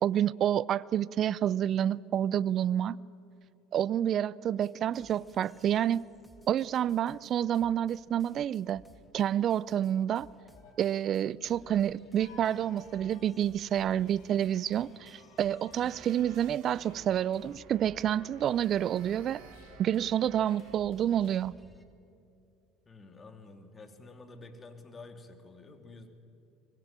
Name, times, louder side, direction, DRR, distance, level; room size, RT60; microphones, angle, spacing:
voice 1, 0.0-3.0 3.7-6.1 6.5-8.8 9.1-10.3 10.8-19.4 19.8-21.5, right 10 dB, 50° right, 0.5 m, -28 dB
sound 1, 4.6-21.8, equal, 5° left, 2.7 m, -59 dB
sound 2, 5.2-5.6 5.9-6.0 6.3-8.1 10.1-21.4, left 5 dB, 75° left, 4.3 m, -59 dB
sound 3, 15.7-20.8, right 14 dB, 65° right, 1.0 m, -55 dB
voice 2, 22.9-26.1, left 3 dB, 25° left, 3.0 m, -49 dB
24.0 x 20.5 x 9.0 m
hypercardioid pair, 85°, 0 cm